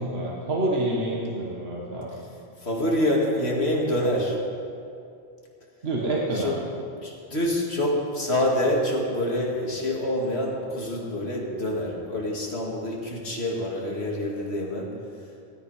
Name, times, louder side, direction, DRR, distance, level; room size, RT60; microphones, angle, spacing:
voice 1, 0.0-2.2 5.8-6.5, right 1 dB, 65° right, -3 dB, 1.8 m, -27 dB
voice 2, 2.6-4.4 6.3-6.5 7.0-14.9, left 1 dB, 70° left, -2 dB, 2.8 m, -26 dB
17.0 x 13.5 x 5.1 m, 2.5 s
omnidirectional pair, 1.1 m